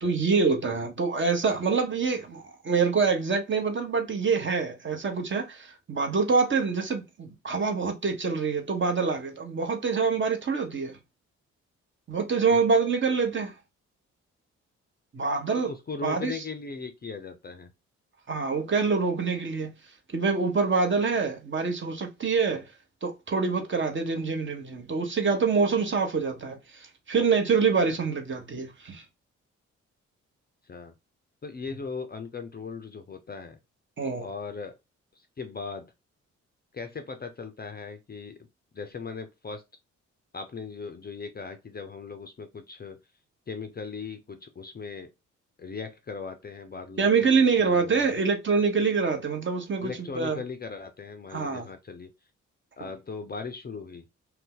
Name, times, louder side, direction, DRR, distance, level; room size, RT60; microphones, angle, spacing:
voice 1, 0.0-11.0 12.1-13.5 15.1-15.7 16.0-16.4 18.3-19.7 20.1-22.7 23.0-29.0 34.0-34.3 47.0-50.4 51.3-51.7, right 5 dB, 35° right, 0.9 m, -26 dB
voice 2, 15.6-17.7 30.6-30.9 31.4-33.6 34.2-34.8 35.2-35.9 36.7-38.5 38.7-39.6 40.3-43.0 43.5-45.1 45.6-48.2 49.8-52.1 52.8-54.0, left 4 dB, 30° left, 0.5 m, -38 dB
2.6 x 2.2 x 3.7 m
hypercardioid pair, 40°, 35 cm